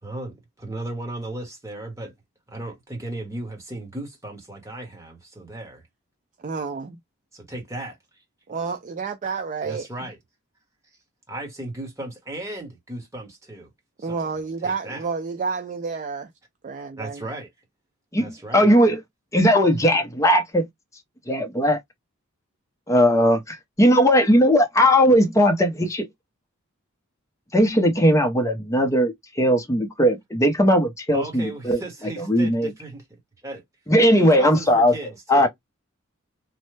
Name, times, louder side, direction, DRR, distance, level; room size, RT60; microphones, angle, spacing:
voice 1, 0.0-2.1 2.5-5.8 7.3-7.9 9.6-10.2 11.3-13.7 14.0-14.3 14.6-15.1 17.0-17.5 18.2-18.7 31.1-33.0 33.4-33.6 34.2-35.5, right 2 dB, 15° right, 1.1 m, -36 dB
voice 2, 6.4-7.0 8.5-10.1 14.0-16.3 16.6-17.2, right 5 dB, 35° right, 0.4 m, -30 dB
voice 3, 18.1-19.0 19.3-20.6 21.3-21.8 22.9-26.1 27.5-31.8 32.3-32.7 33.9-34.9 35.3-35.5, equal, 15° left, 0.6 m, -18 dB
3.1 x 2.1 x 3.1 m
head